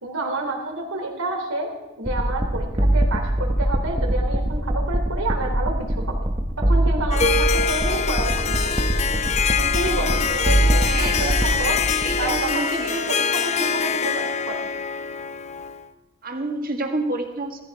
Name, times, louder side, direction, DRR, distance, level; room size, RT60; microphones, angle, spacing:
voice 1, 0.0-1.7 2.0-6.2 6.6-8.5 8.8-9.0 9.6-14.6, right 2 dB, 85° right, 2 dB, 3.5 m, -29 dB
sound 1, 2.0-12.5, right 1 dB, 25° right, 1.0 m, -23 dB
Harp, 7.1-15.9, left 6 dB, 30° left, 0.6 m, -24 dB
voice 2, 10.8-11.4 12.0-12.9 16.2-17.6, right 2 dB, 40° right, 4 dB, 1.8 m, -28 dB
16.0 x 14.5 x 4.8 m, 1.0 s
head